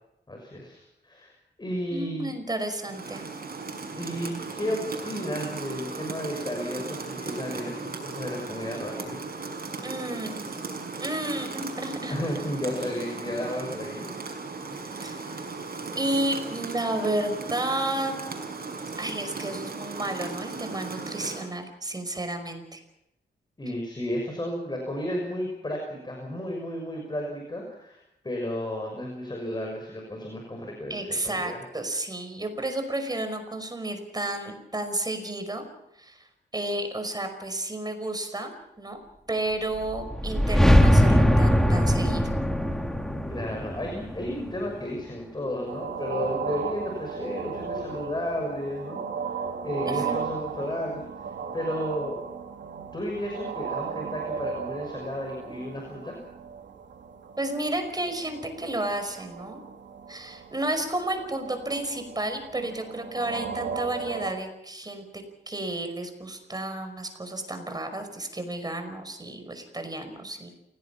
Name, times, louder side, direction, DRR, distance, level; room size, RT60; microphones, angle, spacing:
voice 1, 0.3-2.3 4.0-9.2 12.1-14.2 14.7-15.3 23.6-31.6 43.3-51.0 51.5-52.2 52.9-56.1, left 1 dB, 25° left, 1 dB, 6.3 m, -33 dB
voice 2, 1.9-3.3 9.8-10.5 11.0-12.2 15.0-15.2 16.0-18.1 19.0-22.8 30.9-35.6 36.0-36.3 36.5-38.5 38.8-39.0 39.3-42.3 49.9-50.3 57.4-59.6 60.1-70.5, right 1 dB, 20° right, 6 dB, 5.4 m, -32 dB
Rain, 2.8-21.5, right 4 dB, 55° right, 6.1 m, -37 dB
sound 1, 39.8-45.0, equal, ahead, 2.1 m, -21 dB
sound 2, 45.7-64.3, right 6 dB, 85° right, 2.5 m, -36 dB
29.0 x 18.0 x 5.9 m, 0.82 s
wide cardioid pair, 95°, 18 cm